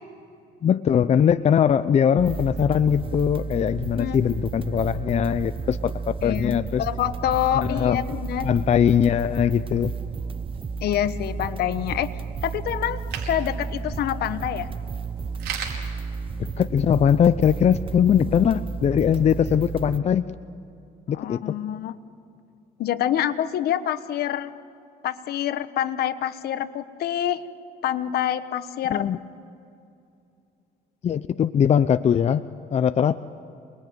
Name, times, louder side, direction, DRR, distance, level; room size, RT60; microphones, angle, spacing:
voice 1, 0.6-6.8 7.5-8.0 8.4-9.9 16.6-20.4 21.1-21.6 28.9-29.2 31.0-32.4 32.7-33.2, left 8 dB, 40° left, 12 dB, 0.6 m, -21 dB
sound 1, 2.2-20.0, right 5 dB, 30° right, 0.9 m, -32 dB
voice 2, 6.2-8.5 10.8-12.1 12.4-13.0 13.3-14.7 21.1-22.0 22.8-24.5 25.0-27.4 27.8-29.1, left 11 dB, 70° left, 12 dB, 1.3 m, -26 dB
sound 2, 8.9-17.0, right 7 dB, 75° right, 5.0 m, -42 dB
28.0 x 21.0 x 9.5 m, 2.6 s
cardioid pair, 110°, 17 cm